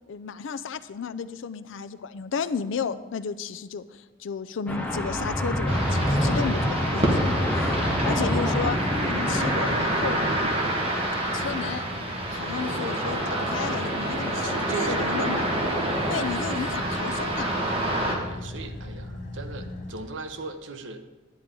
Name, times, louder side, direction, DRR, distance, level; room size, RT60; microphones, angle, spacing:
voice 1, 0.1-7.8 8.0-10.2 11.3-11.9 12.3-15.5 16.0-17.6 19.6-19.7, left 6 dB, 75° left, 12 dB, 0.4 m, -33 dB
sound 1, 4.7-9.8, left 1 dB, 10° left, 1.0 m, -26 dB
sound 2, 5.7-18.1, right 1 dB, 30° right, 1.5 m, -27 dB
Car / Idling, 8.1-20.6, left 2 dB, 40° left, 1.2 m, -40 dB
voice 2, 13.3-16.1 18.1-21.0, right 3 dB, 75° right, 8 dB, 0.8 m, -39 dB
10.5 x 9.4 x 3.8 m, 1.2 s
head